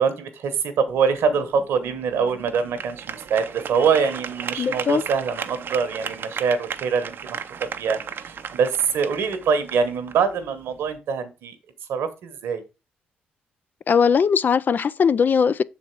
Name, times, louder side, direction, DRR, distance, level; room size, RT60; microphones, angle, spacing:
voice 1, 0.0-11.5 11.9-12.6, right 6 dB, 70° right, 1.1 m, -24 dB
sound 1, 0.9-11.0, right 7 dB, 55° right, 0.6 m, -36 dB
voice 2, 4.6-5.0 13.9-15.6, left 6 dB, 45° left, 0.3 m, -19 dB
6.1 x 4.3 x 4.5 m
hypercardioid pair, 50°, 4 cm